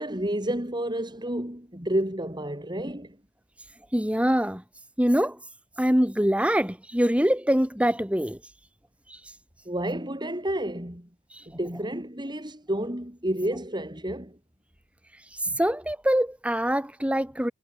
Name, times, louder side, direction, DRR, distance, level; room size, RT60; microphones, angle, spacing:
voice 1, 0.0-3.2 9.6-11.1 11.5-14.4 15.5-15.6, right 1 dB, 20° right, 6.6 m, -30 dB
voice 2, 3.9-4.6 5.0-5.4 5.8-8.4 9.1-9.3 11.3-11.5 15.2-17.5, equal, 5° right, 2.4 m, -24 dB
head